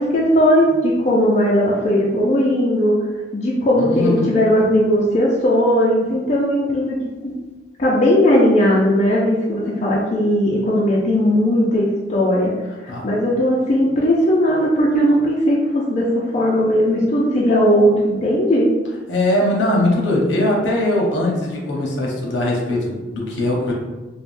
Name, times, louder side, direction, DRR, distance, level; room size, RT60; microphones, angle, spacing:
voice 1, 0.0-2.9 3.3-7.0 7.2-7.4 7.8-12.5 12.8-18.7, equal, 40° left, -4 dB, 0.4 m, -17 dB
voice 2, 3.8-4.2 12.9-13.0 19.1-23.7, left 1 dB, 75° left, -2 dB, 0.7 m, -20 dB
3.3 x 2.1 x 2.5 m, 1.2 s
head